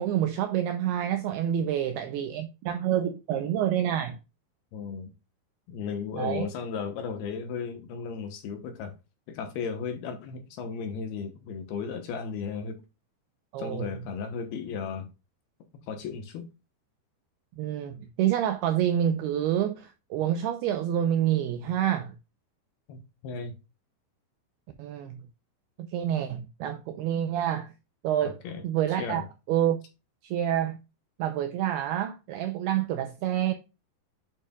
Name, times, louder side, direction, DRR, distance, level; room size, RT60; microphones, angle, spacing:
voice 1, 0.0-4.2 6.2-6.5 13.5-13.9 17.6-22.1 24.8-25.2 25.8-27.7 28.0-29.8 30.2-30.8 31.2-33.5, right 10 dB, 85° right, 2.3 m, -28 dB
voice 2, 4.7-5.1 5.7-8.9 9.3-12.7 13.6-15.1 15.9-16.4 22.9-23.5 28.2-28.6 29.0-29.2, left 6 dB, 70° left, 2.8 m, -35 dB
8.7 x 6.5 x 2.3 m
omnidirectional pair, 5.3 m